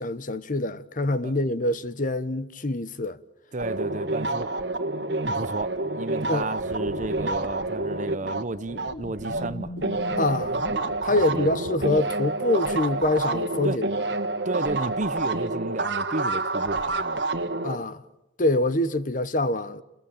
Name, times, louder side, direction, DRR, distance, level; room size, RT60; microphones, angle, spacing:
voice 1, 0.0-3.2 6.3-6.5 10.2-10.6 11.0-13.8 17.6-18.0 18.4-19.8, left 2 dB, 45° left, 1.1 m, -25 dB
voice 2, 3.5-4.5 5.2-9.7 11.3-11.5 13.6-13.8 14.4-17.2, right 2 dB, 45° right, 0.9 m, -32 dB
sound 1, 3.6-9.5 9.8-17.8, right 2 dB, 70° right, 1.7 m, -28 dB
sound 2, 6.6-12.0, left 1 dB, 80° left, 1.1 m, -40 dB
29.0 x 21.5 x 9.0 m
head